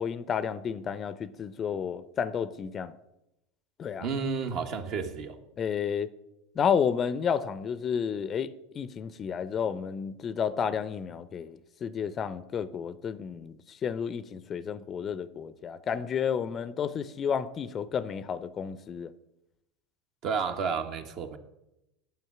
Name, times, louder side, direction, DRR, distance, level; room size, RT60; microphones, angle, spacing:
voice 1, 0.0-2.9 3.8-4.1 5.6-6.1 6.6-19.1, left 7 dB, 35° left, 0.5 m, -31 dB
voice 2, 4.0-5.4 20.2-21.4, right 5 dB, 50° right, 1.2 m, -31 dB
9.1 x 7.1 x 6.0 m
hypercardioid pair, 90°, 0 cm